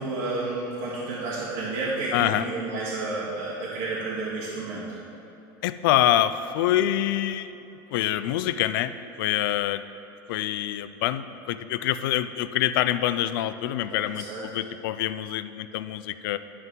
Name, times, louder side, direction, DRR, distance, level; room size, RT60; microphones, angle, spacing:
voice 1, 0.0-4.9 13.9-14.5, right 3 dB, 90° right, -9 dB, 1.9 m, -31 dB
voice 2, 2.1-2.5 5.6-7.6 7.9-9.8 10.3-16.4, left 12 dB, 85° left, 13 dB, 0.4 m, -26 dB
11.0 x 5.7 x 3.6 m, 2.8 s
supercardioid pair, 130°, 11 cm